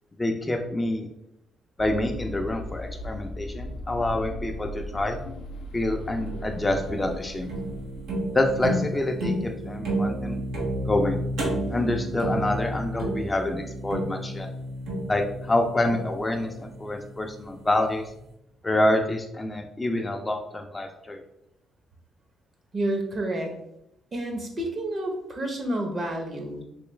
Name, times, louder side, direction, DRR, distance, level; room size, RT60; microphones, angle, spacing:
voice 1, 0.2-1.1 1.8-5.2 5.7-7.5 8.3-10.4 10.9-11.2 11.7-14.5 15.1-18.1 18.6-21.2, left 1 dB, 20° left, 3 dB, 0.4 m, -27 dB
sound 1, 1.8-9.2, equal, 85° left, 0.4 m, -38 dB
sound 2, 6.3-17.5, right 1 dB, 85° right, 0.9 m, -31 dB
voice 2, 22.7-23.6 24.1-26.6, right 1 dB, 40° right, 3 dB, 0.8 m, -29 dB
3.2 x 2.9 x 3.2 m, 0.81 s
cardioid pair, 90°, 0 cm